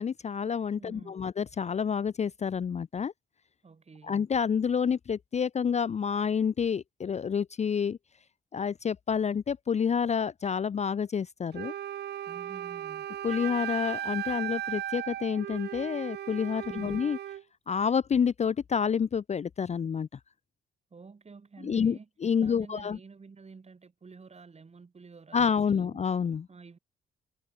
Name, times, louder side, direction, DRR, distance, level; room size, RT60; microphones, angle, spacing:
voice 1, 0.0-3.1 4.1-8.0 8.5-11.7 13.2-17.2 17.7-20.1 21.6-23.0 25.3-26.4, left 7 dB, 35° left, 0.6 m, -28 dB
voice 2, 0.8-1.2 3.6-4.3 12.2-13.1 16.7-17.2 20.9-22.1 22.4-26.0 26.5-26.8, right 4 dB, 30° right, 7.5 m, -50 dB
Wind instrument woodwind instrument, 11.5-17.4, right 11 dB, 55° right, 0.6 m, -36 dB
cardioid pair, 90°, 20 cm